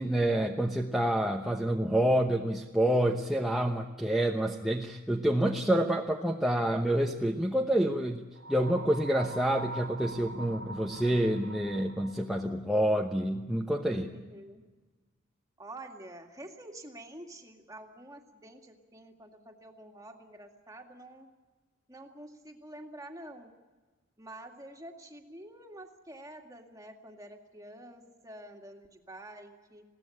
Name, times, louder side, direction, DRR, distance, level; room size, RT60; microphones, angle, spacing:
voice 1, 0.0-14.1, right 1 dB, ahead, 0 dB, 0.9 m, -28 dB
sound 1, 8.4-12.3, right 2 dB, 65° right, 1.7 m, -42 dB
voice 2, 14.0-14.6 15.6-21.3 21.9-23.5 24.2-29.8, right 1 dB, 15° right, 3 dB, 2.1 m, -48 dB
21.5 x 17.0 x 9.9 m, 1.3 s
head